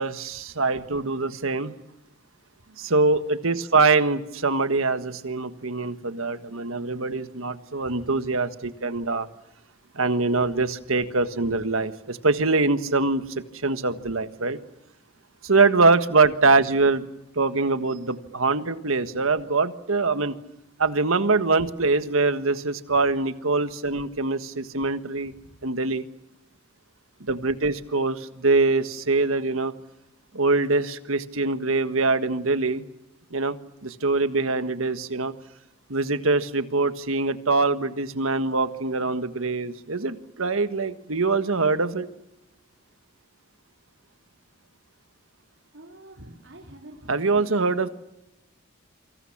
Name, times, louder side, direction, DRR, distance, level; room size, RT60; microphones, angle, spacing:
voice 1, 0.0-1.7 2.8-9.3 9.9-14.6 15.4-17.0 17.3-20.4 20.8-25.3 25.6-26.0 27.2-29.7 30.3-32.8 33.3-33.6 33.8-35.3 35.9-42.1 47.1-47.9, right 3 dB, 80° right, 11 dB, 1.6 m, -23 dB
voice 2, 2.7-3.0 7.8-8.2 25.3-25.6 45.7-47.9, right 1 dB, 65° right, -1 dB, 3.6 m, -48 dB
28.0 x 25.0 x 7.4 m, 0.89 s
head